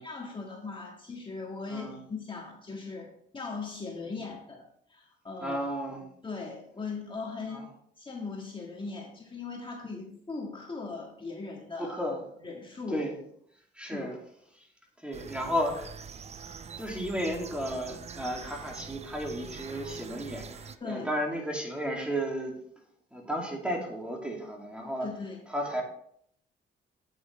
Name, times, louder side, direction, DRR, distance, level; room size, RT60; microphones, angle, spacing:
voice 1, 0.0-4.6 4.9-5.6 6.2-12.0 12.4-13.1 13.9-14.2 20.8-21.1 25.0-25.4, left 4 dB, 25° left, -1 dB, 1.7 m, -39 dB
voice 2, 5.4-6.1 7.5-7.6 11.8-12.5 12.9-13.2 13.7-14.2 14.5-14.6 15.0-15.9 16.8-22.5 23.1-25.1 25.5-25.8, equal, 5° right, 0 dB, 2.5 m, -33 dB
sound 1, 15.1-20.8, right 6 dB, 35° right, 0.5 m, -44 dB
8.8 x 8.1 x 3.3 m, 0.66 s
cardioid pair, 90°, 20 cm